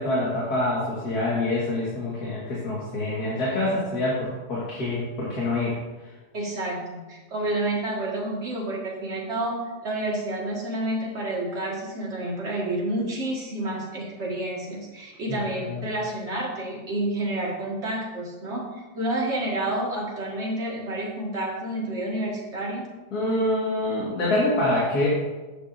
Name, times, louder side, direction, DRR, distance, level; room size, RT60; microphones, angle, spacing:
voice 1, 0.0-5.8 15.6-15.8 23.1-25.1, left 1 dB, 65° left, -6 dB, 2.4 m, -26 dB
voice 2, 6.3-9.6 9.8-18.7 18.9-22.9, right 1 dB, 40° right, -3 dB, 2.2 m, -29 dB
11.5 x 8.5 x 2.7 m, 1.2 s
omnidirectional pair, 1.8 m